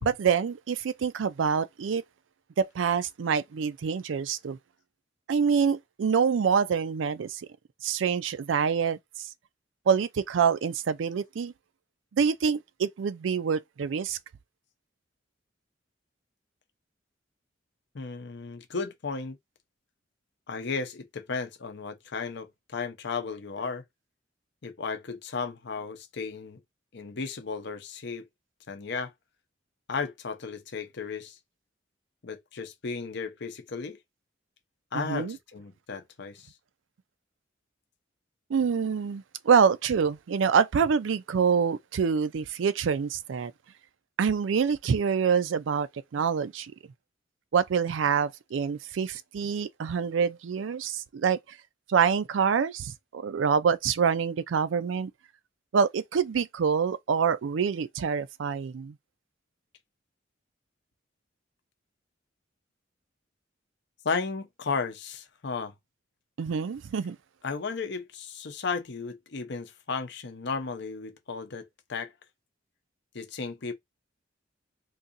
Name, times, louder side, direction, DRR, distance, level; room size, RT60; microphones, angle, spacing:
voice 1, 0.0-2.0 2.6-4.6 5.3-7.4 7.8-9.3 9.9-11.5 12.1-14.2 34.9-35.4 38.5-43.5 44.2-46.7 47.5-51.4 51.9-55.1 55.7-59.0 66.4-67.2, right 6 dB, 80° right, 0.4 m, -26 dB
voice 2, 17.9-19.4 20.5-23.8 24.6-26.6 26.9-28.2 28.7-29.1 29.9-31.4 32.2-34.0 34.9-36.5 64.0-65.7 67.4-72.1 73.1-73.7, left 4 dB, 65° left, 0.7 m, -34 dB
3.9 x 2.7 x 2.5 m
head